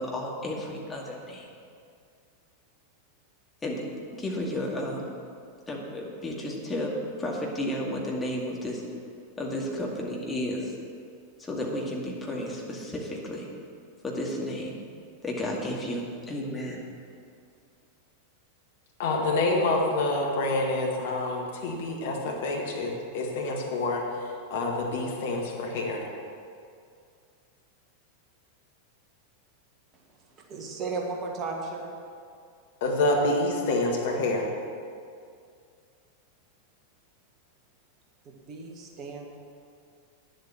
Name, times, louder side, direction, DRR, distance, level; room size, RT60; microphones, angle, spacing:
voice 1, 0.0-1.5 3.6-3.8 4.2-5.2 5.7-8.8 9.4-10.7 11.4-13.5 14.0-14.7 15.2-16.8, left 1 dB, 15° left, -3 dB, 2.2 m, -32 dB
voice 2, 19.0-26.0 32.8-34.5, left 2 dB, 55° left, 0 dB, 1.8 m, -27 dB
voice 3, 30.1-31.9 38.2-39.3, right 3 dB, 35° right, 0 dB, 1.6 m, -35 dB
10.0 x 7.9 x 7.3 m, 2.3 s
figure-of-eight pair, 90°, 0 cm